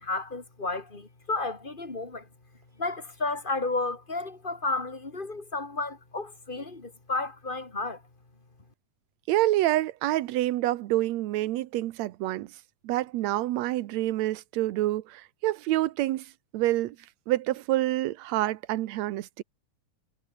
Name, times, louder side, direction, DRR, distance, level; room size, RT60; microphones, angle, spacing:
voice 1, 0.0-2.3 2.8-8.0, left 3 dB, 15° left, 2.7 m, -32 dB
voice 2, 9.3-12.5 12.8-16.3 16.5-17.0 17.3-19.4, right 15 dB, 70° right, 2.0 m, -27 dB
omnidirectional pair, 3.5 m